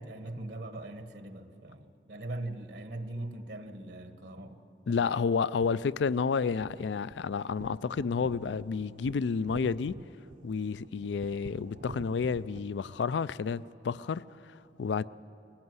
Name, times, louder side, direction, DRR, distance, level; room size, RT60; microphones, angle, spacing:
voice 1, 0.0-4.6 4.9-5.2, right 1 dB, 75° right, 1.3 m, -41 dB
voice 2, 4.9-10.0 10.4-15.0, left 5 dB, 85° left, 0.4 m, -30 dB
sound 1, 5.5-12.6, right 2 dB, 50° right, 0.7 m, -49 dB
21.5 x 15.5 x 9.6 m
head